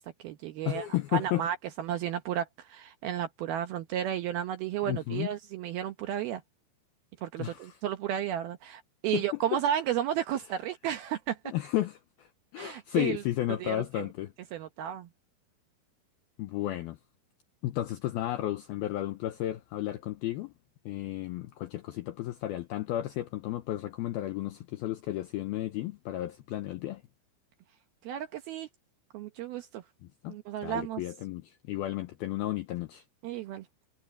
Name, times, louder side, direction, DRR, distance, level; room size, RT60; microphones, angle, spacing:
voice 1, 0.0-0.9 1.1-6.4 7.2-11.4 12.6-13.2 13.5-14.1 14.5-15.1 28.1-28.7 29.1-29.8 30.3-31.0 33.2-33.6, right 10 dB, 75° right, 2.3 m, -33 dB
voice 2, 0.7-1.5 4.9-5.3 7.4-7.8 9.1-9.3 11.5-14.3 16.4-17.0 17.6-20.5 20.9-27.0 30.2-30.4 30.6-33.0, left 14 dB, 85° left, 2.2 m, -33 dB
omnidirectional pair, 5.4 m